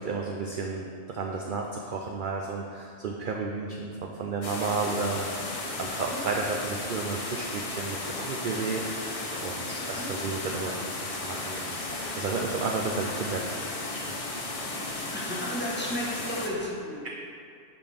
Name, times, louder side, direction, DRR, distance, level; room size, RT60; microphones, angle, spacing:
voice 1, 0.0-3.9 4.2-14.1, right 4 dB, 60° right, 1 dB, 0.5 m, -33 dB
sound 1, 4.4-16.5, left 2 dB, 35° left, 0.6 m, -35 dB
voice 2, 15.1-17.0, equal, 10° left, -6 dB, 1.1 m, -33 dB
8.7 x 4.3 x 3.5 m, 2.4 s
omnidirectional pair, 1.3 m